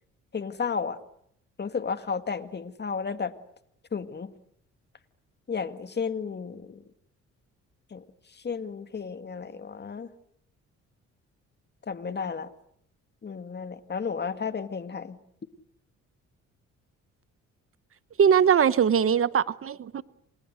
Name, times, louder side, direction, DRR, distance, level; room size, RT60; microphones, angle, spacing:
voice 1, 0.3-1.0 1.6-3.3 3.9-4.3 5.5-6.8 7.9-8.0 8.3-10.1 11.9-12.5 13.2-15.2, left 5 dB, 35° left, 2.1 m, -33 dB
voice 2, 18.2-20.0, right 7 dB, 45° right, 1.0 m, -21 dB
30.0 x 26.5 x 6.5 m
cardioid pair, 90°, 30 cm